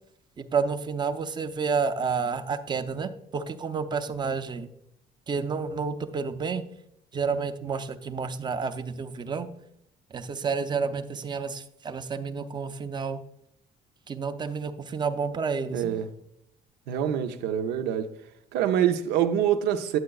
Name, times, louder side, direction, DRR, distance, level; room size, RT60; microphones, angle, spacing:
voice 1, 0.4-4.7 5.3-6.7 7.1-9.5 10.1-13.2 14.1-15.9, right 5 dB, 25° right, 0.5 m, -30 dB
voice 2, 15.7-16.1 16.9-18.1 18.5-20.0, right 10 dB, 90° right, 0.6 m, -25 dB
9.5 x 7.7 x 2.3 m
cardioid pair, 110°, 17 cm